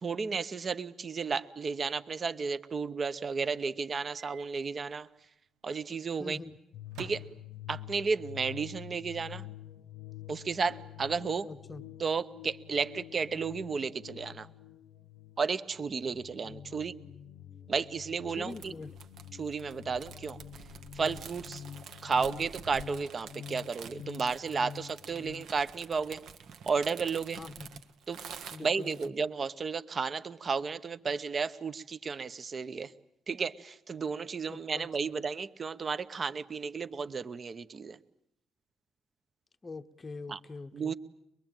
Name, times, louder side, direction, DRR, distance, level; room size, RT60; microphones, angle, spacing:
voice 1, 0.0-5.1 5.6-6.4 7.0-7.2 7.7-9.4 10.3-11.5 12.0-14.5 15.4-16.9 17.7-18.7 19.4-20.4 21.0-21.6 22.0-26.2 26.7-27.4 28.1-28.2 28.6-32.9 33.3-38.0 40.3-40.4 40.7-40.9, right 5 dB, 35° right, 14 dB, 0.9 m, -33 dB
Microwave oven, 4.2-4.5 4.8-4.9 6.9-7.9, right 8 dB, 85° right, 1.4 m, -49 dB
voice 2, 6.2-6.6 11.4-11.8 16.7-16.8 18.3-18.9 27.4-27.8 28.5-29.1 34.5-34.9 39.6-40.9, left 3 dB, 20° left, 7 dB, 0.9 m, -44 dB
sound 1, 6.7-25.5, left 10 dB, 75° left, 0.9 m, -47 dB
sound 2, 18.5-29.1, right 6 dB, 65° right, 1.5 m, -48 dB
24.0 x 22.5 x 9.0 m, 0.80 s
cardioid pair, 135°, 0 cm